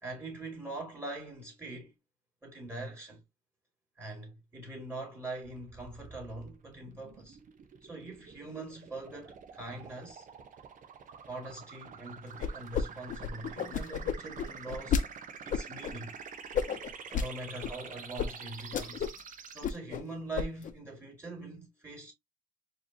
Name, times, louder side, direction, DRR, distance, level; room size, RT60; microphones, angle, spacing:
voice 1, 0.0-1.9 2.4-3.2 4.0-7.4 7.8-10.3 11.3-15.0 15.4-16.2 17.1-19.1 19.5-22.1, right 2 dB, 15° right, 2.6 m, -43 dB
sound 1, 5.4-19.6, right 6 dB, 50° right, 1.0 m, -47 dB
sound 2, 12.4-12.8 13.1-15.0 15.5-15.9 16.5-17.3 17.6-17.7 18.2-18.3 18.6-19.2 19.5-20.0 20.4-20.7, left 7 dB, 50° left, 0.8 m, -31 dB
4.7 x 3.1 x 2.9 m
cardioid pair, 110°, 17 cm